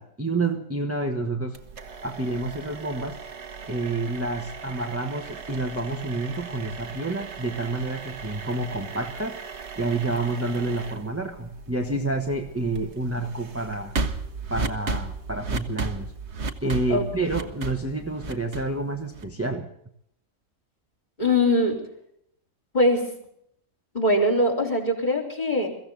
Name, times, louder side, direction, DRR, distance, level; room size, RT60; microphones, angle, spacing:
voice 1, 0.0-1.6 2.0-3.2 3.7-9.4 9.8-13.9 14.5-16.1 16.6-19.7, right 2 dB, 10° right, 3 dB, 1.2 m, -29 dB
sound 1, 1.5-19.5, right 4 dB, 55° right, 1.5 m, -36 dB
voice 2, 21.2-21.8 22.7-23.1 23.9-25.7, left 1 dB, 30° left, 2 dB, 3.8 m, -22 dB
23.0 x 15.0 x 4.0 m, 0.71 s
omnidirectional pair, 1.4 m